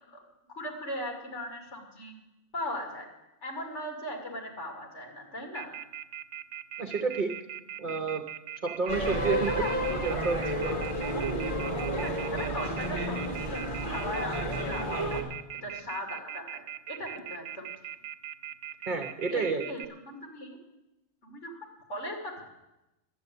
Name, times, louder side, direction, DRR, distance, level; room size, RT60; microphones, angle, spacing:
voice 1, 0.6-2.1 2.5-3.1 3.4-5.7 9.6-9.8 12.0-15.2 15.6-17.7 19.3-20.6 21.2-22.4, left 1 dB, 75° left, 1 dB, 2.8 m, -38 dB
Telephone, 5.5-19.8, right 10 dB, 75° right, 0.9 m, -40 dB
voice 2, 6.8-7.3 7.8-8.2 8.6-9.6 9.9-10.6 18.9-19.6, right 4 dB, 45° right, 5 dB, 0.9 m, -30 dB
sound 1, 8.9-15.2, right 1 dB, 45° left, 2.3 m, -31 dB
11.5 x 7.8 x 9.6 m, 0.96 s
omnidirectional pair, 1.2 m